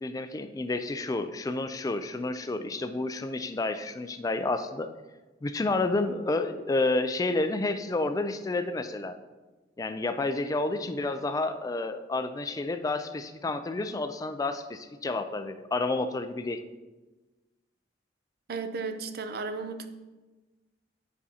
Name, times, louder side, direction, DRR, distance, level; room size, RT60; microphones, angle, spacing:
voice 1, 0.0-4.9 5.4-9.2 9.8-16.6, left 2 dB, 20° left, 9 dB, 0.3 m, -30 dB
voice 2, 18.5-19.9, right 4 dB, 55° right, 9 dB, 0.5 m, -34 dB
8.5 x 5.3 x 2.8 m, 1.2 s
head